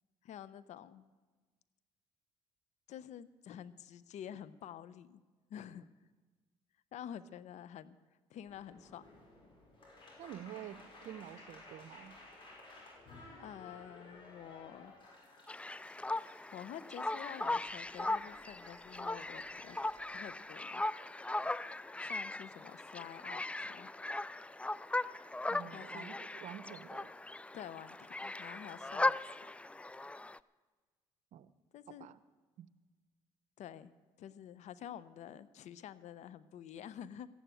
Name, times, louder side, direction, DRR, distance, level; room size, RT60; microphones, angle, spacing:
voice 1, 0.2-1.1 2.9-5.2 5.5-5.9 6.9-8.0 8.3-9.0 13.4-14.9 16.5-19.8 20.1-20.9 22.0-23.9 25.7-26.1 27.5-29.1 31.7-32.1 33.6-33.9 34.2-37.3, left 10 dB, 70° left, 16 dB, 0.7 m, -48 dB
sound 1, 8.4-20.3, left 2 dB, 45° left, 5.7 m, -57 dB
voice 2, 10.2-12.1 25.5-27.1 31.3-31.5 32.0-32.2 32.6-32.7, right 11 dB, 75° right, 15 dB, 0.7 m, -48 dB
sound 2, 15.5-30.4, left 2 dB, 10° left, 0.3 m, -38 dB
14.5 x 9.2 x 8.9 m, 1.3 s
cardioid pair, 80°, 12 cm